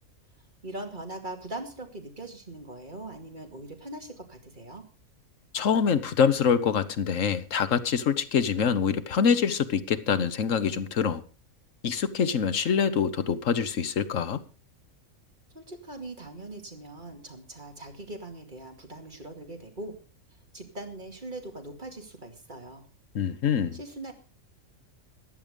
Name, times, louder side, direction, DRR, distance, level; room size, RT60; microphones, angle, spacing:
voice 1, 0.6-4.8 15.5-19.9 20.5-22.8 23.7-24.1, right 1 dB, 35° right, 2.6 m, -41 dB
voice 2, 5.5-11.2 11.8-14.4 23.1-23.8, left 7 dB, 70° left, 1.4 m, -25 dB
14.5 x 11.0 x 5.2 m
omnidirectional pair, 1.4 m